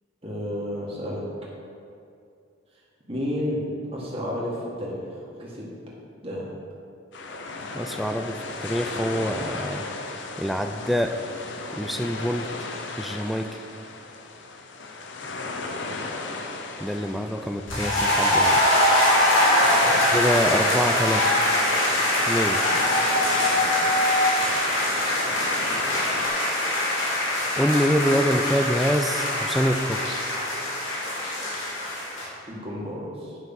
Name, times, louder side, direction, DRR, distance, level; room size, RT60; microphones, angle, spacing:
voice 1, 0.2-1.2 3.1-5.7 6.2-6.5 15.9-16.2 19.8-20.0 24.4-24.8 32.5-33.4, equal, 30° right, -5 dB, 1.8 m, -32 dB
sound 1, 7.1-26.3, left 3 dB, 70° left, 0.7 m, -36 dB
voice 2, 7.7-9.8 10.4-11.4 11.7-12.5 13.0-13.6 16.8-18.6 20.1-21.4 22.3-22.7 27.6-30.3, equal, ahead, 6 dB, 0.3 m, -25 dB
sound 2, 17.7-32.3, left 1 dB, 90° left, 2.1 m, -23 dB
9.3 x 5.8 x 5.5 m, 2.5 s
head